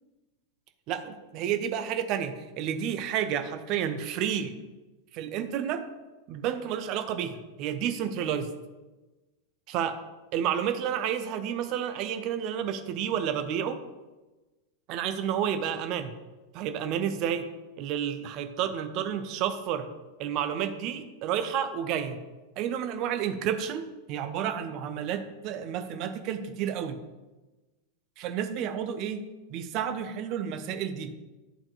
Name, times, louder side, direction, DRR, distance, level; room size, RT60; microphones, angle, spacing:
voice 1, 0.9-4.5 5.1-5.8 6.3-8.5 9.7-9.9 10.3-13.8 14.9-16.1 16.5-17.5 17.8-19.9 20.2-22.2 22.6-27.0 28.2-29.2 29.5-31.1, right 9 dB, 40° right, 8 dB, 0.6 m, -30 dB
11.0 x 4.3 x 2.5 m, 1.1 s
figure-of-eight pair, 90°, 0 cm